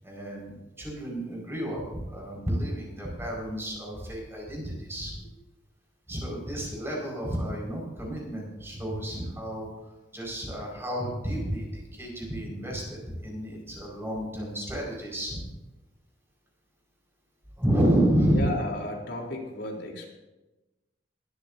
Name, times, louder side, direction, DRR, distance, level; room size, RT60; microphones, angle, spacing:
voice 1, 0.0-5.1 6.1-9.7 10.1-15.4 17.6-18.4, right 1 dB, 15° right, -2 dB, 4.9 m, -30 dB
voice 2, 18.3-20.1, left 1 dB, 85° left, 0 dB, 3.4 m, -33 dB
21.0 x 13.5 x 2.7 m, 1.1 s
head